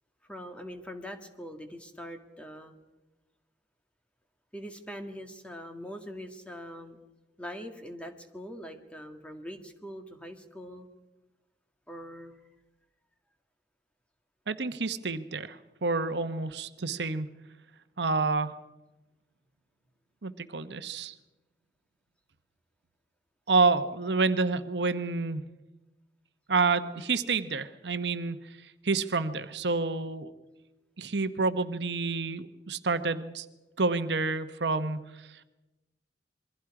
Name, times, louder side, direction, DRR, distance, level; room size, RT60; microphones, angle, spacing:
voice 1, 0.3-2.7 4.5-7.0 7.4-10.9 11.9-12.4, equal, 5° left, 5 dB, 1.8 m, -42 dB
voice 2, 14.5-17.3 18.0-18.6 20.2-21.1 23.5-25.4 26.5-28.4 28.6-30.3 31.0-33.5 33.8-35.4, right 3 dB, 75° right, 10 dB, 1.0 m, -29 dB
27.5 x 22.5 x 4.9 m, 1.1 s
head